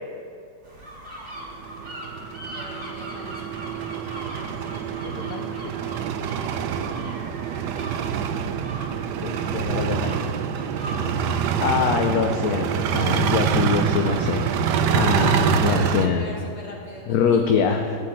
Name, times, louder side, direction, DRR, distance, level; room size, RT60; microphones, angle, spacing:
sound 1, 0.6-15.5, right 1 dB, 35° right, 2.5 m, -41 dB
sound 2, 1.5-16.1, right 8 dB, 80° right, 1.2 m, -25 dB
voice 1, 2.5-3.8 10.7-11.5 15.6-17.8, left 1 dB, 40° left, -2 dB, 2.3 m, -40 dB
voice 2, 5.0-5.7 9.2-10.3 11.6-14.5 14.9-16.2 17.1-18.0, left 6 dB, 65° left, 4 dB, 1.1 m, -24 dB
13.5 x 5.4 x 8.7 m, 2.4 s
omnidirectional pair, 1.9 m